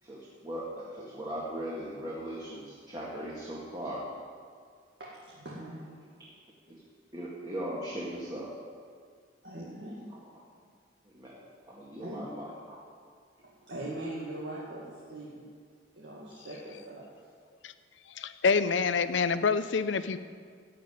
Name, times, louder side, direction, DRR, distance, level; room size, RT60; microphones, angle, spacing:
voice 1, 0.0-4.1 6.7-6.8 7.1-8.5 10.1-10.3 11.0-12.8, right 1 dB, 20° right, -6 dB, 1.8 m, -39 dB
voice 2, 5.0-6.2 9.4-10.2 11.2-11.3 12.0-12.2 13.4-15.4 16.0-17.0, right 1 dB, 70° right, -7 dB, 2.1 m, -41 dB
voice 3, 18.2-20.2, left 5 dB, 80° left, 13 dB, 0.6 m, -27 dB
15.5 x 5.2 x 9.4 m, 2.1 s
head